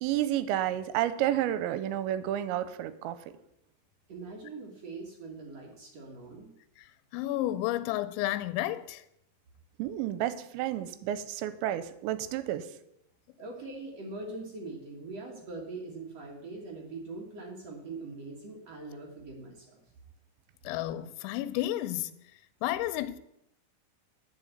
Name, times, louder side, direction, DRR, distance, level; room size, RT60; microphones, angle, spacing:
voice 1, 0.0-3.2 9.8-12.6, right 12 dB, 90° right, 2.9 m, -30 dB
voice 2, 4.1-6.5 13.4-19.8, right 3 dB, 60° right, 1.7 m, -42 dB
voice 3, 7.1-9.0 20.6-22.1 22.6-23.2, left 14 dB, 90° left, 2.9 m, -31 dB
9.0 x 5.6 x 8.0 m
omnidirectional pair, 5.2 m